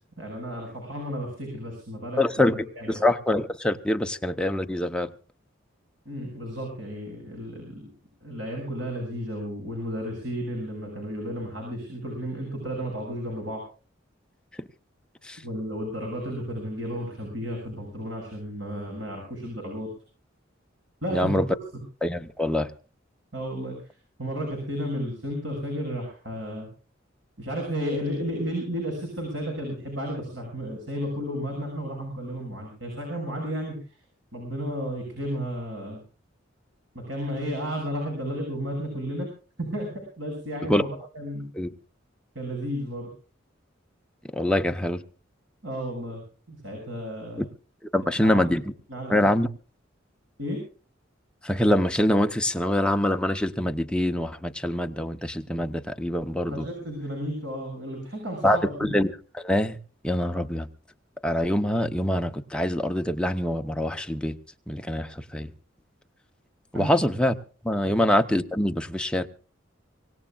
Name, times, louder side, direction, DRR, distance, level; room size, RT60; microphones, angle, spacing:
voice 1, 0.2-2.2 2.5-3.0 6.0-7.9 8.2-13.6 15.4-19.9 21.0-21.4 23.3-23.8 24.2-26.7 27.4-33.8 34.3-36.0 36.9-39.3 39.6-39.9 40.2-40.9 41.1-41.5 42.3-43.1 45.6-46.2 46.5-47.4 48.2-48.5 48.9-49.2 50.4-50.6 56.5-58.7 66.7-67.0 67.8-68.0, equal, 70° right, 6.5 m, -33 dB
voice 2, 2.2-5.1 15.3-15.4 21.1-21.5 22.0-22.7 40.7-40.8 41.5-41.7 44.3-45.0 47.4-47.5 47.9-48.6 49.1-49.5 51.4-56.7 58.4-59.8 60.0-60.7 61.2-64.4 64.7-65.5 66.7-67.3 67.6-69.3, left 1 dB, 5° left, 0.8 m, -24 dB
25.0 x 18.0 x 2.4 m
head